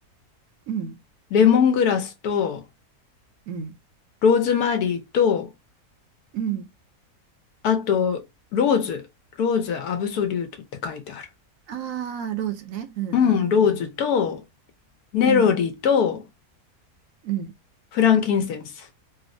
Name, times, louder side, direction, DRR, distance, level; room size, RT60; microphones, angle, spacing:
voice 1, 0.7-1.0 3.5-3.8 6.3-6.7 11.7-13.8 15.3-15.5 17.2-17.5, right 9 dB, 70° right, 0.9 m, -30 dB
voice 2, 1.3-2.6 4.2-5.5 7.6-8.2 8.5-9.0 9.4-10.5 10.8-11.3 13.1-14.4 15.1-16.2 17.9-18.7, left 7 dB, 80° left, 1.2 m, -21 dB
3.4 x 2.0 x 2.5 m
omnidirectional pair, 1.6 m